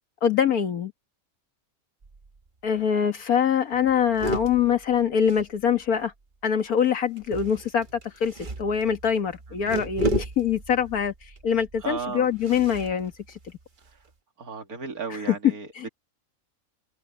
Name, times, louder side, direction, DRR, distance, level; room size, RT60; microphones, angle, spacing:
voice 1, 0.2-0.9 2.6-6.1 6.4-8.3 8.6-13.1 15.1-15.4 15.8-15.9, left 8 dB, 80° left, 1.9 m, -24 dB
sound 1, 2.0-2.5 2.8-2.9 3.1-3.4 3.7-6.1 7.2-14.1, right 1 dB, 35° right, 1.3 m, -34 dB
voice 2, 11.8-12.3 14.4-15.7, right 5 dB, 80° right, 2.8 m, -34 dB
omnidirectional pair, 1.5 m